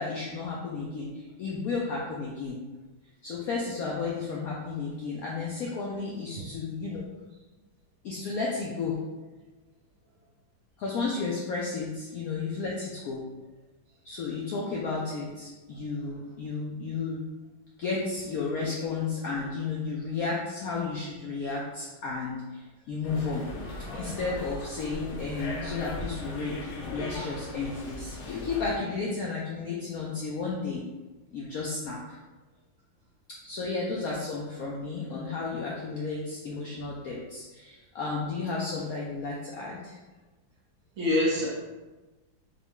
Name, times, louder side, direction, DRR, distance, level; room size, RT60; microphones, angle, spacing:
voice 1, 0.0-2.6 3.2-7.0 8.0-9.0 10.8-13.2 14.0-17.2 17.8-23.5 23.9-26.6 26.9-30.8 31.3-32.2 33.4-40.0, left 4 dB, 90° left, -3 dB, 0.8 m, -33 dB
sound 1, 23.0-28.8, left 2 dB, 70° left, 1.1 m, -38 dB
voice 2, 41.0-41.5, left 1 dB, 55° right, -6 dB, 1.1 m, -26 dB
3.8 x 2.2 x 3.5 m, 1.2 s
omnidirectional pair, 2.1 m